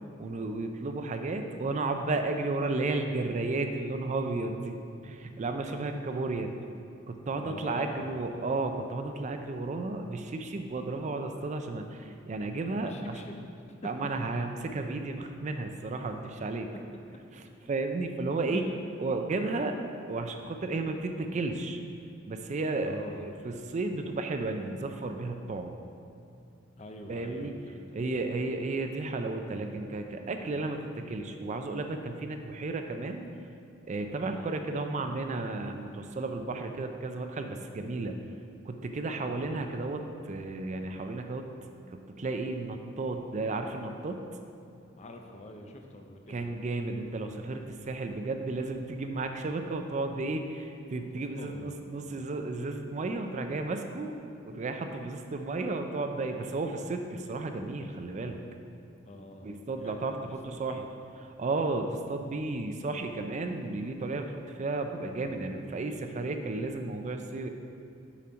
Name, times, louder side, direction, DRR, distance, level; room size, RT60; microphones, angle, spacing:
voice 1, 0.2-4.8 5.0-6.5 7.1-13.3 13.8-16.7 17.3-18.7 19.0-19.8 20.1-21.8 22.3-25.7 27.1-27.5 27.9-33.3 33.9-38.2 38.7-41.4 41.9-44.2 46.3-54.1 54.5-58.4 59.4-60.8 61.2-67.5, right 3 dB, 40° right, 6 dB, 0.4 m, -33 dB
voice 2, 7.4-8.2 12.8-13.5 13.8-13.9 18.5-18.8 22.8-23.3 26.8-28.0 34.2-34.6 39.2-39.6 45.0-46.5 51.4-51.8 59.1-60.3 60.6-60.8, left 1 dB, 35° left, 3 dB, 0.6 m, -45 dB
7.0 x 4.3 x 5.1 m, 2.6 s
head